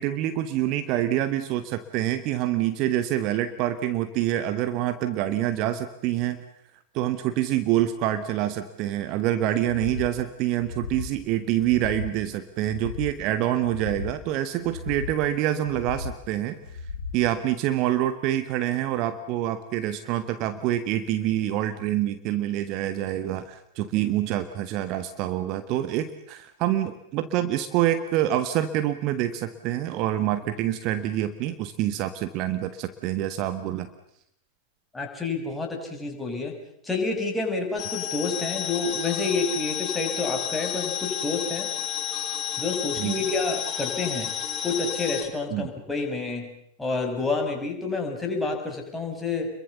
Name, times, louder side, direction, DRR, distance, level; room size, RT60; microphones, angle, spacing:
voice 1, 0.0-6.4 6.9-16.6 17.1-33.9 43.0-43.2 45.5-45.7, right 12 dB, 40° right, 10 dB, 1.4 m, -26 dB
sound 1, 9.6-10.1 10.5-11.1 11.6-12.2 12.6-13.2 13.6-14.2 14.6-15.2 15.6-16.2 16.6-17.2, left 5 dB, 80° left, 2.0 m, -36 dB
voice 2, 34.9-36.6 36.8-41.7 42.6-44.3 44.6-46.5 46.8-49.5, left 3 dB, 10° left, 1 dB, 5.9 m, -29 dB
sound 2, 37.8-45.2, left 9 dB, 30° left, 4.6 m, -31 dB
29.5 x 22.5 x 7.0 m, 0.71 s
figure-of-eight pair, 90°, 0 cm